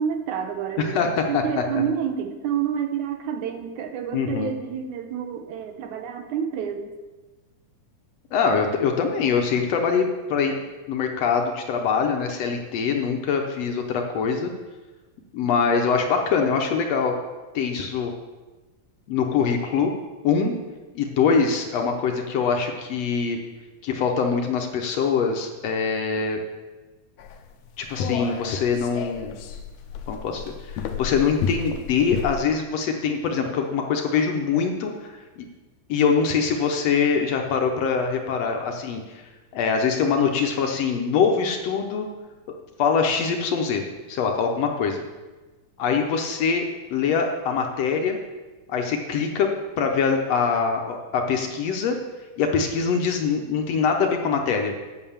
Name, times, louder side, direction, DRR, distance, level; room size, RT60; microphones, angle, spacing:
voice 1, 0.0-6.9, right 8 dB, 80° right, 7 dB, 2.3 m, -29 dB
voice 2, 0.8-1.6 4.1-4.6 8.3-10.6 10.9-14.5 15.3-17.2 17.6-18.1 19.1-19.9 20.2-20.5 21.0-23.4 23.8-26.4 27.8-29.3 30.1-35.5 35.9-39.2 39.5-42.1 42.8-43.8 44.1-45.0 45.8-48.2 48.7-49.5 49.8-52.0 52.4-54.7, left 5 dB, 70° left, 3 dB, 1.8 m, -23 dB
sound 1, 27.2-32.4, left 8 dB, 85° left, 2.2 m, -32 dB
8.9 x 6.5 x 7.2 m, 1.2 s
omnidirectional pair, 3.4 m